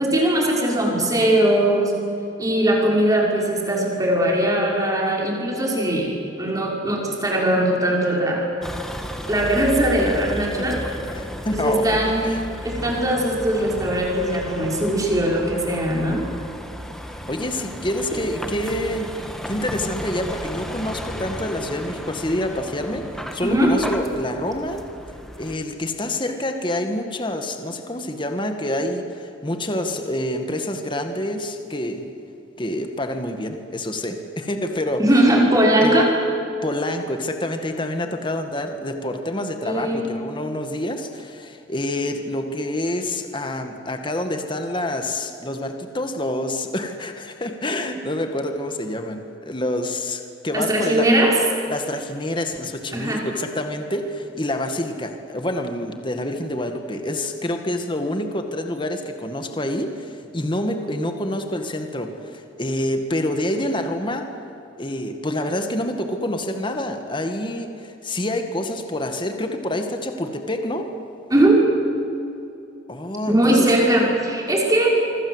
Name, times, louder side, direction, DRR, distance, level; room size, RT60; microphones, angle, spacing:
voice 1, 0.0-1.9 2.4-8.5 9.3-10.8 11.5-12.3 12.6-16.2 23.4-23.7 35.0-36.1 39.6-40.1 50.5-51.3 52.9-53.2 71.3-71.6 73.3-75.0, right 1 dB, 20° right, -1 dB, 5.8 m, -20 dB
Vehicle, 8.6-25.6, equal, ahead, 1.9 m, -34 dB
voice 2, 11.1-11.9 12.2-12.4 17.3-24.8 25.4-32.1 32.6-35.2 35.8-36.0 36.6-51.1 51.7-64.3 64.8-70.9 72.9-73.7, left 1 dB, 25° left, 6 dB, 2.0 m, -27 dB
25.5 x 25.5 x 8.2 m, 2.8 s
head